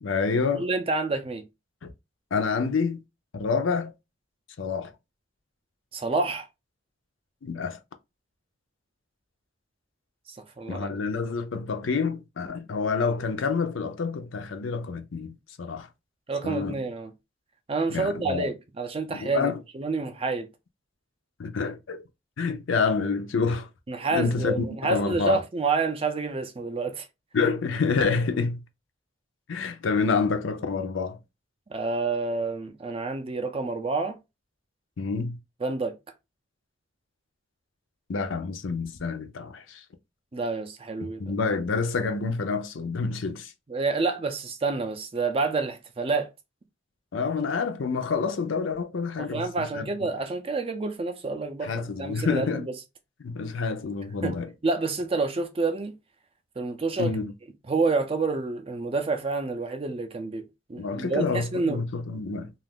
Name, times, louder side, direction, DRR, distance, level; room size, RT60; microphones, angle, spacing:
voice 1, 0.0-0.7 1.8-1.9 2.3-3.0 3.3-3.9 4.6-4.9 7.4-7.8 10.7-15.9 16.4-16.8 17.9-18.5 19.1-19.6 21.4-22.0 22.4-23.7 24.1-25.4 27.3-28.6 29.5-31.2 35.0-35.4 38.1-39.8 41.2-43.5 47.1-49.9 51.6-52.7 53.2-54.5 57.0-57.3 60.8-62.5, left 4 dB, 70° left, 0.5 m, -28 dB
voice 2, 0.6-1.4 5.9-6.5 10.3-11.0 16.3-17.1 17.7-20.5 23.9-27.1 27.4-27.5 31.7-34.2 35.6-36.0 40.3-41.3 43.7-46.3 49.2-52.6 54.2-54.3 54.6-55.9 56.6-57.1 57.7-60.4 60.7-61.8, right 3 dB, 30° right, 0.4 m, -28 dB
2.4 x 2.4 x 3.4 m
head